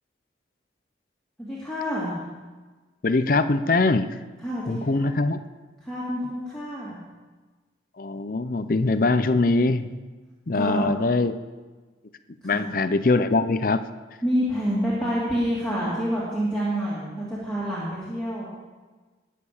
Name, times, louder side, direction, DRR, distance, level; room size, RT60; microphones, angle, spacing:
voice 1, 1.4-2.2 4.4-5.2 5.8-7.0 10.5-11.0 12.4-12.7 14.2-18.5, equal, 5° left, -9 dB, 2.7 m, -28 dB
voice 2, 3.0-4.1 4.7-5.4 8.0-9.9 10.5-11.3 12.4-13.8, left 3 dB, 50° left, 11 dB, 0.6 m, -22 dB
20.0 x 6.8 x 7.0 m, 1.3 s
head